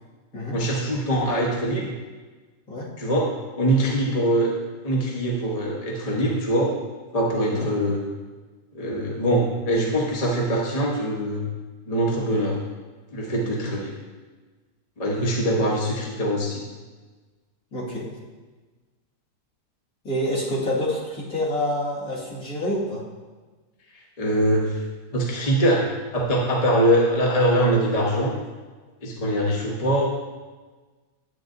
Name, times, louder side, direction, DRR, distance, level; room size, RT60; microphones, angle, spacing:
voice 1, 0.5-1.9 3.0-3.3 3.6-4.5 4.8-6.7 7.1-8.0 8.7-11.5 11.9-12.6 13.1-13.9 15.0-16.6 24.2-24.8 25.1-25.8 26.1-28.3 29.0-30.1, right 1 dB, 25° left, -2 dB, 0.9 m, -23 dB
voice 2, 17.7-18.1 20.0-23.0, left 1 dB, 55° left, -6 dB, 2.4 m, -27 dB
9.1 x 9.0 x 2.6 m, 1.3 s
omnidirectional pair, 1.8 m